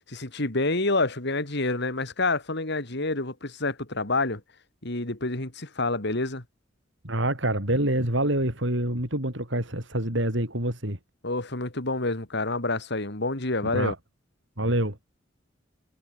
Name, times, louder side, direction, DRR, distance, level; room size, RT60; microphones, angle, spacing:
voice 1, 0.1-4.4 4.8-6.4 11.2-13.9, left 2 dB, 60° left, 3.3 m, -28 dB
voice 2, 7.0-11.0 13.7-14.0 14.6-15.0, right 1 dB, 65° right, 7.3 m, -26 dB
head